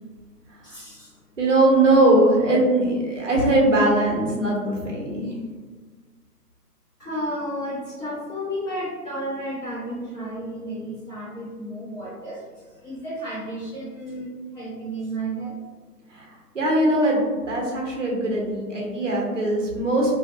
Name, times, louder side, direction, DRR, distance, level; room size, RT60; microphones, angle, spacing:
voice 1, 0.6-1.2 7.0-15.5, right 1 dB, 15° left, -16 dB, 1.4 m, -32 dB
voice 2, 1.4-5.3 16.1-16.3 16.5-20.1, right 1 dB, 50° right, -3 dB, 0.8 m, -20 dB
2.6 x 2.1 x 2.5 m, 1.5 s
figure-of-eight pair, 155°, 49 cm